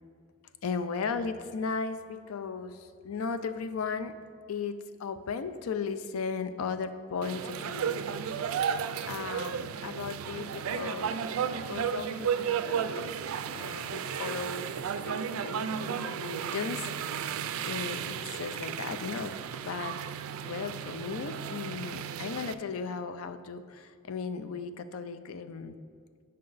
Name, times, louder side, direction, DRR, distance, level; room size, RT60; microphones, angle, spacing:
voice 1, 0.6-4.2 4.5-8.1 8.5-8.6 9.0-13.1 13.5-17.4 17.6-20.0 20.4-25.8, left 5 dB, 85° left, 11 dB, 0.4 m, -36 dB
sound 1, 7.2-22.5, right 7 dB, 80° right, 0.3 m, -34 dB
8.5 x 5.4 x 3.9 m, 2.2 s
head